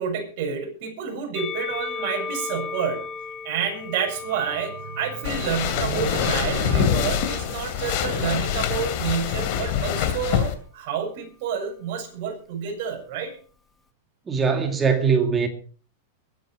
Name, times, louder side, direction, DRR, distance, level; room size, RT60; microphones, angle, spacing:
voice 1, 0.0-3.0 3.4-13.3, right 7 dB, 45° right, 7.0 m, -29 dB
Musical instrument, 1.3-7.7 8.6-9.6, left 5 dB, 15° left, 0.9 m, -37 dB
sound 1, 3.5-8.3, right 7 dB, 80° right, 4.3 m, -36 dB
sound 2, 5.2-10.6, left 9 dB, 45° left, 2.5 m, -25 dB
voice 2, 14.3-15.5, right 6 dB, 15° right, 2.1 m, -21 dB
22.0 x 9.5 x 4.9 m
supercardioid pair, 160°, 0 cm